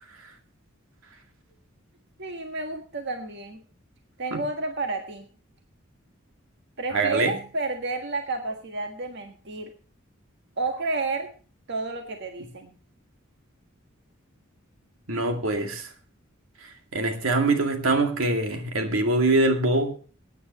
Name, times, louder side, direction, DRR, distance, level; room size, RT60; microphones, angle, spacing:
voice 1, 2.2-3.6 4.2-5.2 6.8-9.7 10.6-11.3 11.7-12.7, right 3 dB, 60° right, 4 dB, 1.6 m, -31 dB
voice 2, 6.9-7.4 15.1-15.9 16.6-19.9, right 2 dB, 85° right, 5 dB, 2.4 m, -24 dB
22.0 x 9.7 x 3.0 m, 0.38 s
head